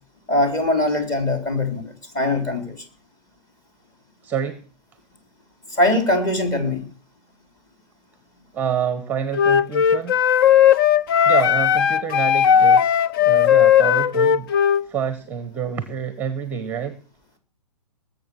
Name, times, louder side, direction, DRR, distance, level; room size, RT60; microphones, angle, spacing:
voice 1, 0.3-2.8 5.7-6.8, left 1 dB, 20° left, 6 dB, 3.7 m, -22 dB
voice 2, 4.2-4.6 8.5-10.2 11.2-14.5 14.8-17.0, right 8 dB, 10° right, 12 dB, 1.2 m, -27 dB
Wind instrument woodwind instrument, 9.3-14.8, left 9 dB, 35° left, 0.6 m, -16 dB
20.0 x 7.7 x 6.4 m, 0.41 s
hypercardioid pair, 135°, 20 cm